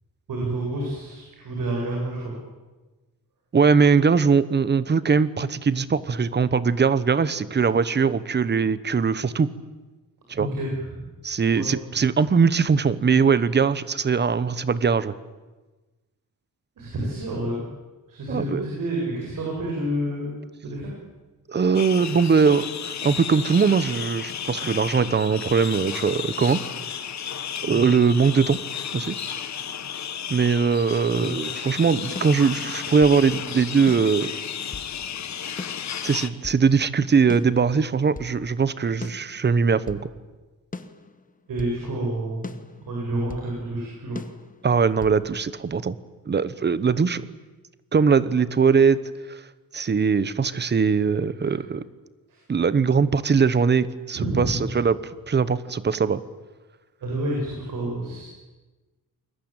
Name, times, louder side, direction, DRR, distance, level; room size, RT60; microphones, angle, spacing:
voice 1, 0.3-2.3 10.4-11.0 11.5-11.7 16.8-17.6 18.1-20.3 20.6-20.9 27.7-27.8 31.1-31.3 41.5-42.6 42.9-44.2 52.3-52.4 54.1-54.7 57.0-58.2, right 1 dB, 65° right, -2 dB, 7.7 m, -29 dB
voice 2, 3.5-9.5 10.3-10.5 11.2-15.1 18.3-18.6 21.5-26.6 27.6-28.6 28.9-29.2 30.3-34.3 35.5-35.6 36.0-40.0 44.6-46.0 46.3-47.2 47.9-49.0 49.3-49.4 49.7-51.8 52.5-55.0 55.3-56.2, right 5 dB, 30° right, 16 dB, 1.1 m, -21 dB
sound 1, 21.7-36.3, left 8 dB, 50° left, 1.5 m, -33 dB
sound 2, 32.2-33.2 33.9-34.9 35.6-36.7 37.3-38.3 39.0-40.1 40.7-41.8 42.4-43.5 44.2-45.2, left 3 dB, 25° left, 1.3 m, -39 dB
28.5 x 22.5 x 9.0 m, 1.2 s
wide cardioid pair, 165°, 35 cm